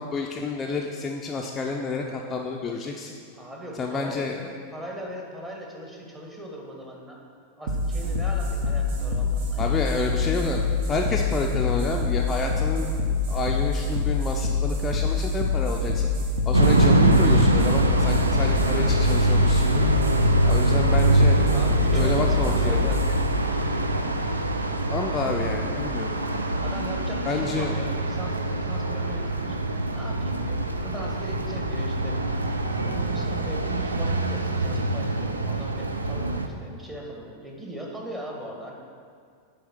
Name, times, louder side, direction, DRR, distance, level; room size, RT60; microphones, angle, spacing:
voice 1, 0.0-3.1 3.8-4.5 9.6-10.6 10.9-12.9 13.2-16.1 16.4-19.9 20.4-21.4 21.9-22.8 24.9-26.4 27.3-27.7, left 4 dB, 20° left, 0 dB, 0.5 m, -29 dB
voice 2, 3.3-4.2 4.7-7.2 7.6-9.7 21.5-23.3 25.3-25.5 26.6-29.6 29.9-32.2 32.5-38.7, equal, 15° right, -1 dB, 1.4 m, -39 dB
sound 1, 7.7-24.7, left 3 dB, 55° right, 0.9 m, -26 dB
sound 2, 16.5-36.5, right 2 dB, 80° right, 0.5 m, -24 dB
9.1 x 3.5 x 5.8 m, 2.1 s
figure-of-eight pair, 90°, 0 cm